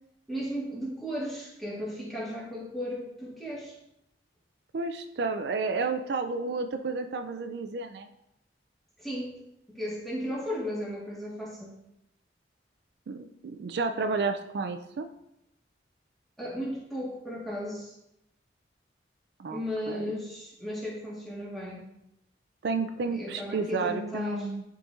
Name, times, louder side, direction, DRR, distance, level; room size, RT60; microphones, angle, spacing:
voice 1, 0.3-3.7 9.0-9.3 9.7-11.7 16.4-17.9 19.5-21.8 23.1-24.5, equal, ahead, -6 dB, 1.6 m, -35 dB
voice 2, 4.7-8.1 13.1-15.1 19.4-19.6 19.9-20.0 22.6-24.6, right 4 dB, 65° right, 7 dB, 0.4 m, -31 dB
10.5 x 3.8 x 2.5 m, 0.83 s
head